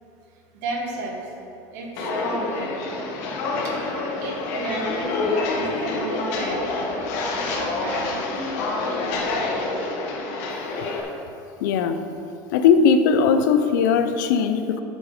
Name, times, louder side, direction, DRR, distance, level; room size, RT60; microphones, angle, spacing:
voice 1, 0.5-1.4 1.7-2.7 3.6-3.8 4.2-6.8 7.5-8.2, right 2 dB, 65° right, 0 dB, 1.8 m, -33 dB
Walk footsteps, 1.9-11.0, left 3 dB, 55° left, 1.4 m, -27 dB
voice 2, 11.6-12.0 12.5-14.8, left 6 dB, 85° left, 9 dB, 0.7 m, -19 dB
8.7 x 7.9 x 5.0 m, 2.8 s
cardioid pair, 180°, 10 cm